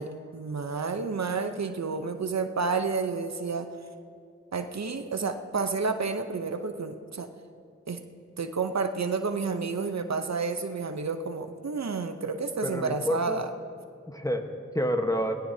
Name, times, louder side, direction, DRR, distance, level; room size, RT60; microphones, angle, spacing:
voice 1, 0.0-3.7 4.5-7.3 7.9-8.0 8.4-13.5, right 4 dB, 65° right, 8 dB, 0.8 m, -30 dB
voice 2, 12.6-13.5 14.1-15.4, equal, 10° left, 5 dB, 1.2 m, -29 dB
19.0 x 16.0 x 2.8 m, 2.3 s
cardioid pair, 50°, 29 cm